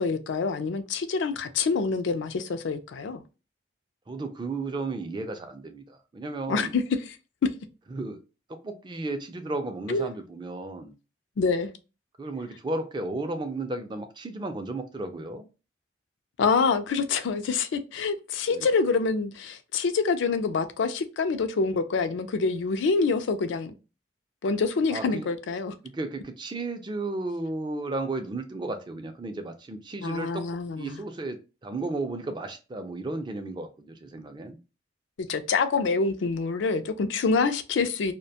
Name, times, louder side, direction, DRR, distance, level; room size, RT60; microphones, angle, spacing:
voice 1, 0.0-3.2 6.5-7.2 7.4-7.5 9.9-10.1 11.4-11.7 16.4-23.7 24.4-25.7 30.0-31.0 35.2-38.1, left 4 dB, 90° left, 0.4 m, -26 dB
voice 2, 4.1-6.7 7.9-8.2 8.5-10.9 12.2-15.4 18.5-18.7 24.9-25.3 25.8-30.5 30.7-34.6, right 2 dB, 25° right, 0.3 m, -34 dB
2.4 x 2.1 x 2.7 m
head